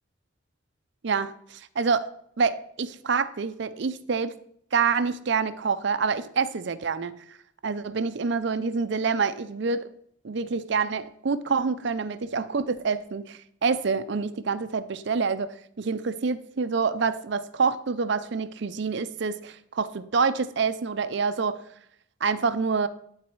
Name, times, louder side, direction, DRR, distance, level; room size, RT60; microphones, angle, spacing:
voice 1, 1.0-2.1 2.4-4.3 4.7-7.4 7.6-9.9 10.2-21.6 22.2-22.9, right 5 dB, 60° right, 12 dB, 0.5 m, -27 dB
11.5 x 4.1 x 4.6 m, 0.68 s
head